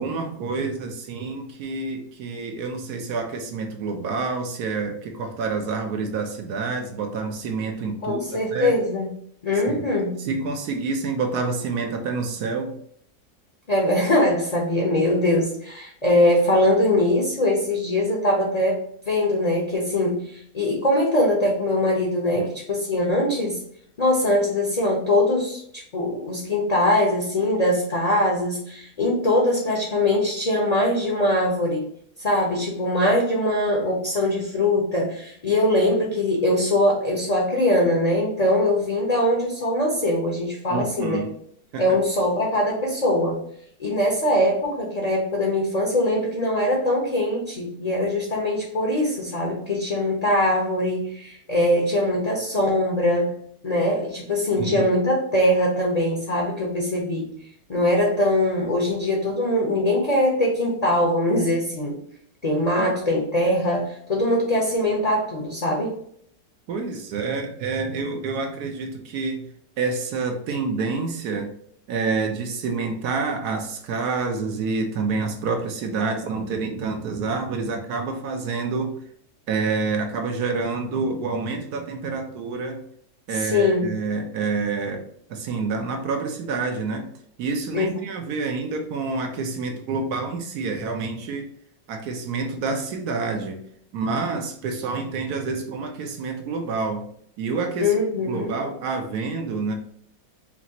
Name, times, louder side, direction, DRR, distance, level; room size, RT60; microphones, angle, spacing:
voice 1, 0.0-8.8 9.7-9.9 10.2-12.7 22.4-22.5 40.7-41.3 41.7-41.8 54.6-54.8 62.8-62.9 66.7-69.5 69.8-71.5 71.9-79.0 79.5-82.8 83.3-87.1 87.4-91.5 91.9-93.6 93.9-97.1 97.4-97.9 98.3-99.7, right 4 dB, 70° right, 5 dB, 1.2 m, -28 dB
voice 2, 8.0-9.1 9.4-10.1 13.7-18.8 19.1-23.6 24.0-31.9 32.2-41.2 41.8-43.4 43.8-53.4 53.6-57.3 57.7-62.0 62.4-65.9 83.4-83.9 87.7-87.9 97.8-98.5, left 1 dB, 30° left, -1 dB, 0.7 m, -22 dB
6.0 x 2.4 x 2.9 m, 0.65 s
omnidirectional pair, 1.9 m